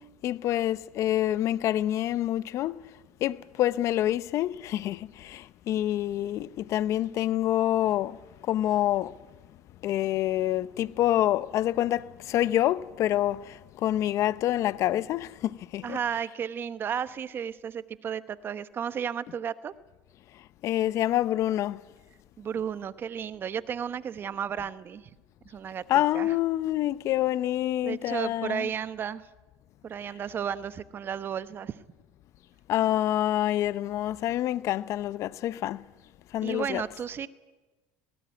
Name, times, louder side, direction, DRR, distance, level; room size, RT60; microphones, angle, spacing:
voice 1, 0.2-2.8 3.2-8.2 8.5-9.1 9.8-16.0 20.6-21.8 25.9-28.7 32.7-35.8 36.3-36.8, left 13 dB, 50° left, 0.7 m, -27 dB
voice 2, 15.8-19.7 22.4-25.0 25.4-25.8 26.1-26.3 27.8-29.3 29.8-31.8 36.4-37.3, right 8 dB, 35° right, 1.1 m, -33 dB
19.0 x 18.0 x 9.6 m
supercardioid pair, 105°, 6 cm